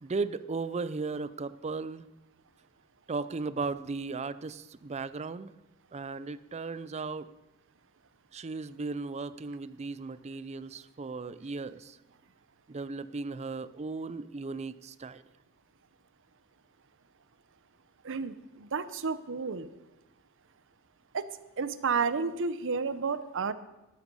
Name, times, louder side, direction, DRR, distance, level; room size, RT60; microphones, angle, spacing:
voice 1, 0.0-2.1 3.1-5.5 5.9-7.3 8.3-12.0 12.7-15.2, right 4 dB, 30° right, 15 dB, 0.4 m, -36 dB
voice 2, 18.0-19.7 21.1-21.3 21.6-23.5, right 5 dB, 60° right, 14 dB, 0.7 m, -31 dB
13.0 x 12.5 x 5.4 m, 1.0 s
head